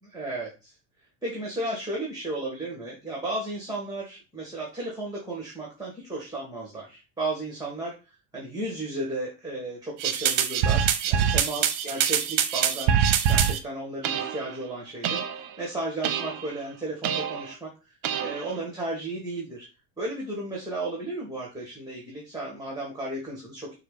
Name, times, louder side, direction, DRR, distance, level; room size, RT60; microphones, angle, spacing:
voice 1, 0.0-0.7 1.2-17.9 18.2-19.7 20.0-23.7, right 2 dB, 10° right, -3 dB, 1.7 m, -34 dB
sound 1, 10.0-13.6 14.0-14.6 15.0-15.5 16.0-16.6 17.0-17.5 18.0-18.6, right 8 dB, 55° right, 0.7 m, -25 dB
5.6 x 2.5 x 3.3 m, 0.30 s
hypercardioid pair, 85°, 47 cm